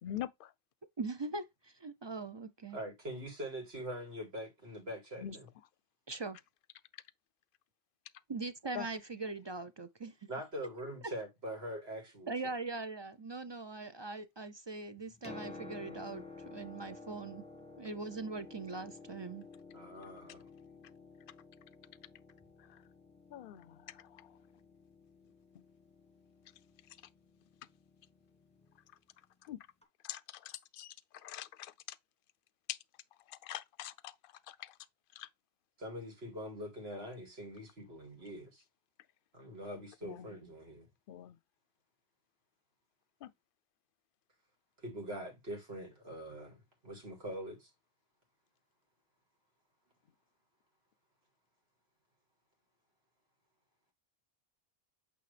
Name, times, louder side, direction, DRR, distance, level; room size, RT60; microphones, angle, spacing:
voice 1, 0.0-0.5 5.2-5.4 8.7-8.9 22.7-22.8 23.3-24.3 29.4-29.6 30.0-32.0 32.7-32.8 33.3-34.7 35.2-35.3 40.0-40.3 41.1-41.4 43.2-43.3, left 11 dB, 65° left, 0.7 m, -44 dB
voice 2, 1.0-2.8 6.1-6.4 8.3-10.1 12.3-16.2 16.5-17.4 17.8-19.5, right 3 dB, 40° right, 0.4 m, -41 dB
voice 3, 2.7-5.5 10.3-12.5 19.7-20.5 35.8-38.6 39.3-40.9 44.8-47.7, equal, 75° right, 2.7 m, -43 dB
Piano, 15.0-28.7 29.8-29.9, left 3 dB, 5° left, 1.2 m, -53 dB
8.5 x 3.5 x 3.3 m
omnidirectional pair, 1.0 m